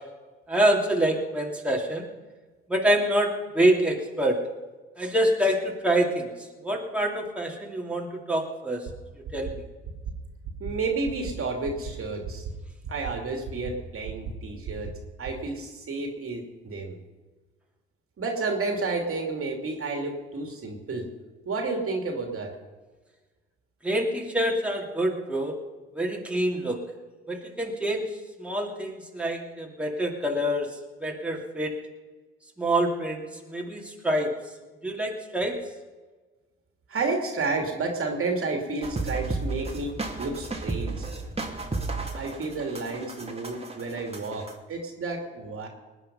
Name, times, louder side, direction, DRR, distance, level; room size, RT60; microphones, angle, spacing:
voice 1, 0.5-2.1 2.7-4.4 5.0-6.3 6.6-8.9 9.3-9.6 23.8-25.6 25.9-26.8 27.3-28.1 28.4-30.7 31.0-31.7 32.6-34.3 34.8-35.6, right 1 dB, 5° right, -1 dB, 2.9 m, -26 dB
sound 1, 8.9-9.0 9.2-9.5 9.8-10.1 10.4-10.7 11.0-11.3 11.6-11.9 12.2-12.5 12.8-13.1 13.4-13.7 14.0-14.3 14.6-14.9 15.2-15.3, right 6 dB, 70° right, 2.2 m, -35 dB
voice 2, 10.6-12.4 12.9-14.9 15.2-17.0 18.2-21.1 21.5-22.5 36.9-41.1 42.1-45.7, right 3 dB, 50° right, 3 dB, 2.8 m, -31 dB
sound 2, 38.8-44.5, right 3 dB, 20° right, 2.5 m, -33 dB
19.5 x 9.3 x 5.5 m, 1.3 s
hypercardioid pair, 60°, 29 cm